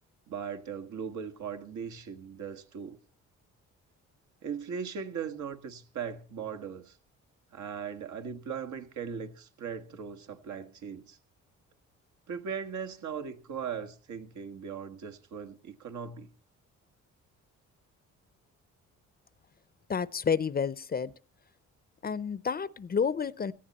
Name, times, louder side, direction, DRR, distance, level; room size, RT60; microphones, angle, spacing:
voice 1, 0.3-3.0 4.4-7.0 7.5-11.2 12.3-16.3, right 7 dB, 75° right, 1.6 m, -39 dB
voice 2, 19.9-21.1 22.0-23.5, left 6 dB, 30° left, 0.6 m, -30 dB
18.0 x 15.0 x 4.2 m
cardioid pair, 90°, 30 cm